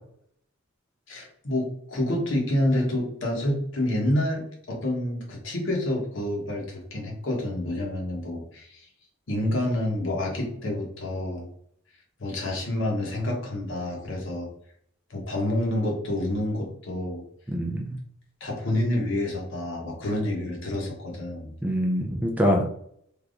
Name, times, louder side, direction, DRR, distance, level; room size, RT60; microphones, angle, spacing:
voice 1, 1.1-8.9 9.3-11.5 12.2-14.5 15.1-17.2 18.4-21.5, left 1 dB, 65° left, -1 dB, 1.0 m, -28 dB
voice 2, 17.5-18.0 21.6-22.7, equal, 5° right, 1 dB, 0.4 m, -24 dB
3.4 x 2.9 x 2.5 m, 0.67 s
head